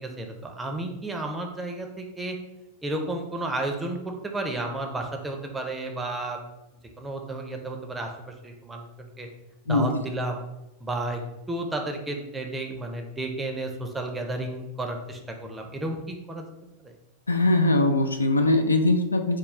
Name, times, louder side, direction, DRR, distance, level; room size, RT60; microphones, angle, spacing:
voice 1, 0.0-2.4 2.8-6.4 7.0-8.1 8.4-9.3 9.7-10.4 10.8-11.2 11.5-16.5 16.8-16.9, right 2 dB, 10° right, 2 dB, 0.5 m, -32 dB
voice 2, 17.3-19.4, left 2 dB, 80° left, 5 dB, 0.3 m, -21 dB
3.6 x 2.3 x 3.1 m, 0.92 s
figure-of-eight pair, 90°, 0 cm